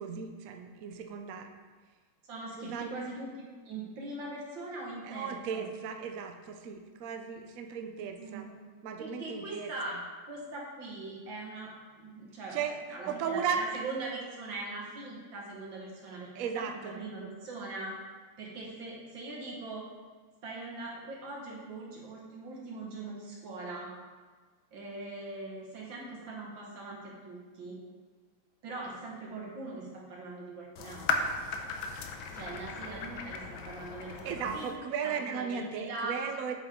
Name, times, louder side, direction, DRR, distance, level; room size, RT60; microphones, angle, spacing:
voice 1, 0.0-1.5 2.6-2.9 5.0-8.5 8.8-10.0 12.5-13.6 16.3-17.0 34.2-36.5, right 7 dB, 90° right, 5 dB, 0.7 m, -36 dB
voice 2, 2.2-5.7 8.2-8.6 9.0-9.9 10.3-12.6 12.9-18.0 18.4-19.9 20.4-23.9 24.7-27.8 28.6-31.4 32.3-34.7 35.0-36.2, right 2 dB, 60° right, -3 dB, 2.3 m, -41 dB
sound 1, 30.8-34.8, left 4 dB, 70° left, 1.4 m, -36 dB
7.7 x 7.6 x 3.7 m, 1.4 s
omnidirectional pair, 2.4 m